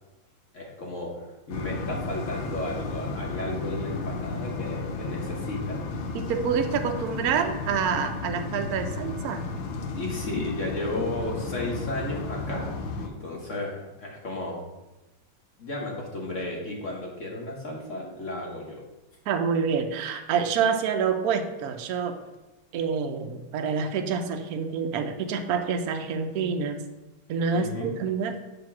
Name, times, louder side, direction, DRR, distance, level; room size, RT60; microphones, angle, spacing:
voice 1, 0.5-5.8 9.9-12.7 13.0-14.6 15.6-18.8 27.5-27.9, left 1 dB, 45° left, -2 dB, 1.2 m, -34 dB
sound 1, 1.5-13.1, left 3 dB, 75° left, 1.4 m, -33 dB
voice 2, 6.1-9.4 19.3-22.1 22.7-26.8 27.3-28.4, right 6 dB, 75° right, 5 dB, 0.8 m, -27 dB
6.9 x 2.9 x 5.8 m, 1.0 s
omnidirectional pair, 2.3 m